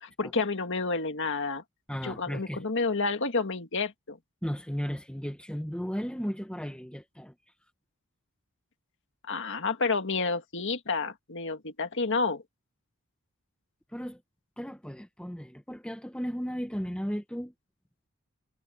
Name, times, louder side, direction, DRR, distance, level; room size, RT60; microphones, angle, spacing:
voice 1, 0.0-1.6 2.0-4.2 9.3-12.4, left 4 dB, 55° left, 2.0 m, -30 dB
voice 2, 1.9-2.6 4.4-7.3 13.9-14.2 14.6-17.5, equal, 5° left, 1.3 m, -35 dB
head